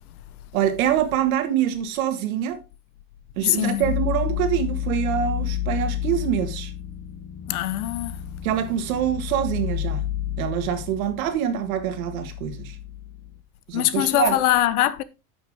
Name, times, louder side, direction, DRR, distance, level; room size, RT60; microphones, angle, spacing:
voice 1, 0.5-2.6 3.4-6.7 8.4-10.1 10.4-12.8 13.7-14.4, right 10 dB, 75° right, 1.8 m, -25 dB
voice 2, 3.4-3.9 7.5-8.2 13.7-15.0, left 14 dB, 90° left, 1.0 m, -22 dB
sound 1, 3.8-13.4, left 11 dB, 40° left, 1.1 m, -30 dB
9.7 x 6.3 x 3.5 m
supercardioid pair, 160°, 43 cm